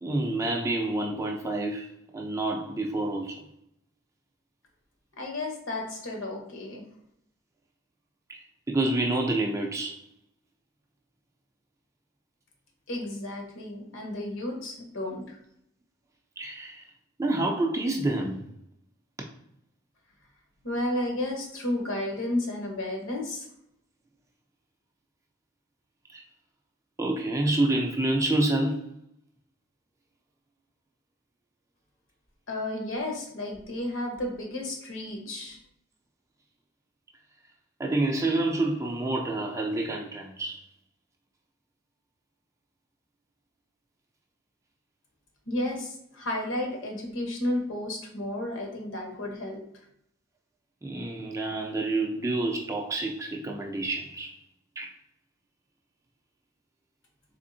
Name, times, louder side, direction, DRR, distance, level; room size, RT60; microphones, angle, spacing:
voice 1, 0.0-3.4 8.3-8.4 8.7-10.0 16.4-16.8 17.2-18.4 26.1-26.2 27.0-28.9 37.8-40.6 50.8-54.3 54.8-54.9, right 2 dB, 15° right, 0.4 m, -28 dB
voice 2, 5.2-6.8 12.9-15.4 20.6-23.5 32.5-35.6 45.5-49.6, left 1 dB, 70° left, 1.0 m, -32 dB
3.5 x 3.4 x 2.6 m
head